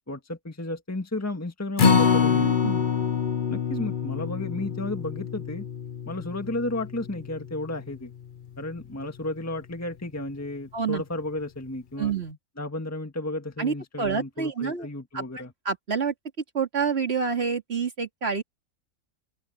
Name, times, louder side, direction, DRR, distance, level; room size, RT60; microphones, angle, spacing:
voice 1, 0.1-2.5 3.5-5.6 6.0-8.1 8.6-12.1 12.6-15.5, left 2 dB, 10° left, 1.6 m, -33 dB
Acoustic guitar, 1.8-8.1 8.5-8.6 9.0-9.1, left 6 dB, 40° left, 0.8 m, -25 dB
voice 2, 2.4-2.9 10.7-11.0 12.0-12.4 13.6-14.9 15.1-15.2 15.6-16.1 16.5-18.4, right 6 dB, 45° right, 2.6 m, -28 dB
open air
omnidirectional pair, 1.5 m